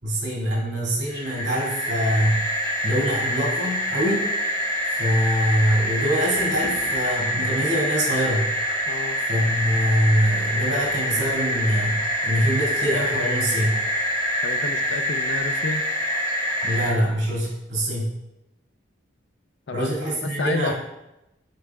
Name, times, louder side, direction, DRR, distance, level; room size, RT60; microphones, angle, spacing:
voice 1, 0.0-2.5 2.8-4.3 5.0-8.5 9.3-13.8 16.6-18.1 19.7-20.7, equal, 65° right, -6 dB, 2.2 m, -24 dB
sound 1, 1.1-16.9, equal, 20° left, 1.8 m, -26 dB
voice 2, 8.9-9.2 14.4-15.8 19.7-20.7, left 3 dB, 65° left, 8 dB, 0.5 m, -30 dB
11.0 x 4.1 x 2.3 m, 0.92 s
head